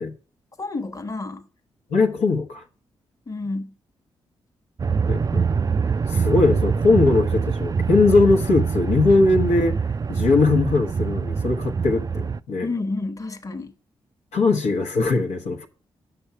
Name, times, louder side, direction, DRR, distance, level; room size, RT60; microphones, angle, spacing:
voice 1, 0.6-1.5 3.3-3.8 12.6-13.7, left 3 dB, 30° left, 1.1 m, -30 dB
voice 2, 1.9-2.6 5.1-5.4 6.1-9.8 10.1-12.7 14.3-15.7, left 3 dB, 80° left, 1.1 m, -20 dB
sound 1, 4.8-12.4, right 5 dB, 35° right, 0.4 m, -24 dB
7.8 x 5.8 x 5.8 m
supercardioid pair, 50°, 11 cm